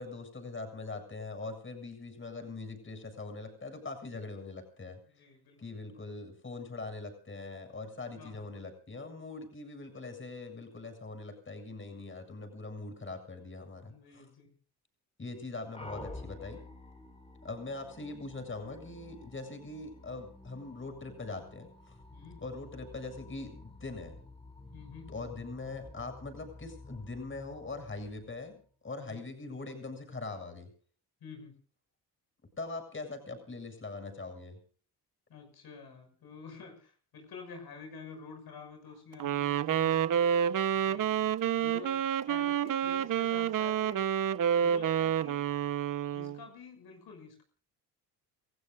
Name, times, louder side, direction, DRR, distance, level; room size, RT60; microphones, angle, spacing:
voice 1, 0.0-5.0 5.6-14.3 15.2-16.6 17.4-22.0 22.4-24.2 25.1-28.6 28.8-30.7 32.6-34.6, left 3 dB, 30° left, 6 dB, 7.5 m, -42 dB
voice 2, 5.1-5.8 8.2-8.5 13.9-14.5 22.1-22.4 24.7-25.1 29.1-29.2 31.2-31.5 35.3-40.2 40.8-41.2 41.6-44.0 44.6-45.4 46.1-47.4, left 5 dB, 65° left, 4 dB, 6.7 m, -49 dB
sound 1, 15.7-28.6, left 2 dB, 15° left, 4.6 m, -50 dB
Wind instrument woodwind instrument, 39.2-46.4, right 9 dB, 50° right, 1.1 m, -29 dB
29.0 x 15.5 x 2.6 m, 0.44 s
cardioid pair, 80°, 40 cm